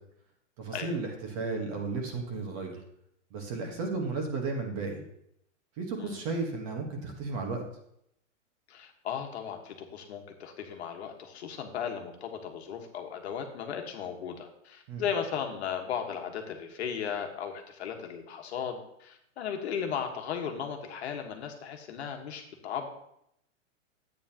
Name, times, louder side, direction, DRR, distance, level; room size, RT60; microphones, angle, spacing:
voice 1, 0.6-2.8 3.3-5.0 5.8-7.6 14.9-15.0, right 3 dB, 25° right, 2 dB, 1.3 m, -34 dB
voice 2, 8.7-22.9, left 7 dB, 55° left, 3 dB, 1.5 m, -36 dB
11.5 x 8.9 x 2.9 m, 0.75 s
supercardioid pair, 170°, 39 cm